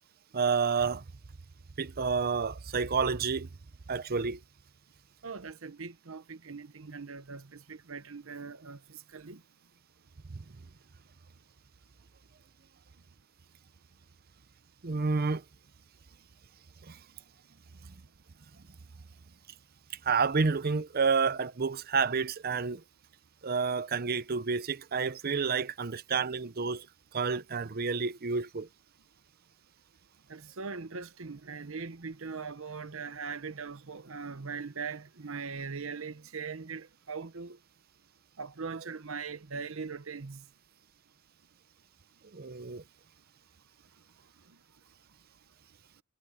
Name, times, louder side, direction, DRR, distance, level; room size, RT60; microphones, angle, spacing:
voice 1, 0.3-1.0 1.8-3.5 3.9-4.4 10.3-10.4 14.8-15.4 16.9-17.0 20.0-22.8 23.4-26.9 27.1-28.7 42.3-42.8, right 5 dB, 45° right, 0.7 m, -29 dB
voice 2, 5.2-9.4 30.3-37.6 38.4-40.4, right 5 dB, 65° right, 1.0 m, -40 dB
head